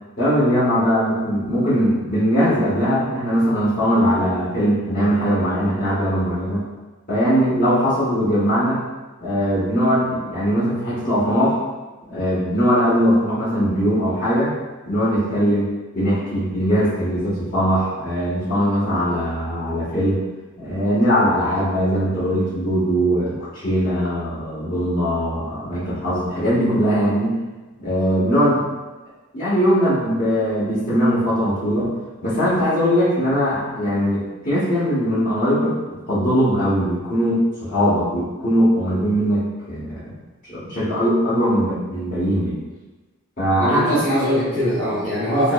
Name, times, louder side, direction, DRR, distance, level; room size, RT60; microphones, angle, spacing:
voice 1, 0.2-6.6 7.1-8.8 9.2-11.6 12.1-14.6 14.8-20.2 20.5-27.4 27.8-28.6 29.3-31.9 32.2-40.1 40.4-42.6 43.4-44.0, equal, 40° left, -9 dB, 1.3 m, -20 dB
voice 2, 43.6-45.5, equal, 10° left, -12 dB, 0.9 m, -21 dB
5.7 x 2.0 x 2.3 m, 1.2 s
head